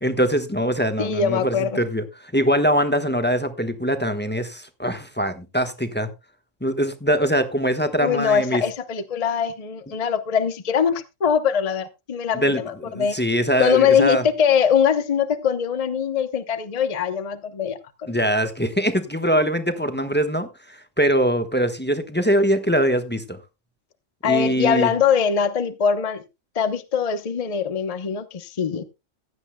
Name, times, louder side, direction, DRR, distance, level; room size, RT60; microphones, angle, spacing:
voice 1, 0.0-2.0 2.3-6.1 6.6-8.6 12.3-14.2 18.1-23.4 24.2-24.9, equal, 10° left, 1.1 m, -22 dB
voice 2, 1.0-1.8 8.0-13.2 13.6-18.2 24.2-26.2 26.5-28.8, left 7 dB, 35° left, 0.8 m, -22 dB
16.0 x 11.0 x 2.2 m
omnidirectional pair, 1.3 m